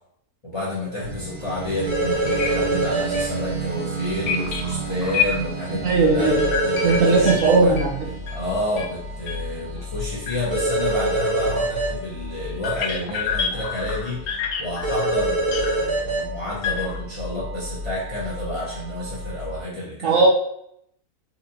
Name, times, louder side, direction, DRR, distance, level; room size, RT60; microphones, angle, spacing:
voice 1, 0.4-6.4 6.6-7.7 8.3-14.2 14.6-20.2, left 1 dB, 45° left, -7 dB, 0.4 m, -30 dB
sound 1, 1.0-19.6, right 2 dB, 80° right, 1.4 m, -33 dB
sound 2, 1.7-1.8 2.3-2.5 2.8-2.9 3.1-3.2 4.3-5.6 6.4-8.4 8.8-8.9 9.2-9.4 9.7-9.8 10.3-10.4 11.3-11.4 12.6-15.7 16.6-17.2 17.5-17.8, left 7 dB, 70° left, 1.0 m, -28 dB
sound 3, 1.9-3.2 6.2-7.5 10.5-11.9 14.8-16.2, right 1 dB, 40° right, 1.1 m, -23 dB
voice 2, 5.8-6.4 6.8-7.9 20.0-20.3, right 4 dB, 60° right, -2 dB, 1.0 m, -18 dB
4.2 x 2.6 x 2.7 m, 0.73 s
omnidirectional pair, 1.7 m